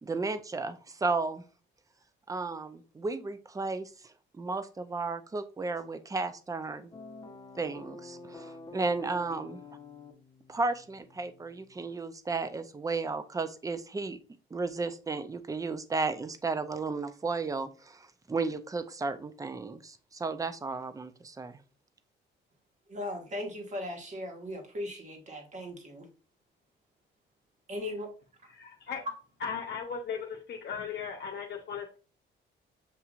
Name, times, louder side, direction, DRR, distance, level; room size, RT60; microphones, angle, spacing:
voice 1, 0.0-1.4 2.3-6.9 7.5-9.6 10.5-14.2 14.5-21.6, right 3 dB, 15° right, 12 dB, 0.5 m, -34 dB
sound 1, 6.9-12.0, left 3 dB, 20° left, 0.8 m, -49 dB
voice 2, 22.9-26.1 27.7-28.1, left 1 dB, 35° right, 3 dB, 1.5 m, -38 dB
voice 3, 28.5-29.0 29.4-32.0, left 6 dB, 60° left, 2 dB, 0.7 m, -37 dB
6.8 x 2.8 x 2.4 m, 0.37 s
cardioid pair, 90°, 20 cm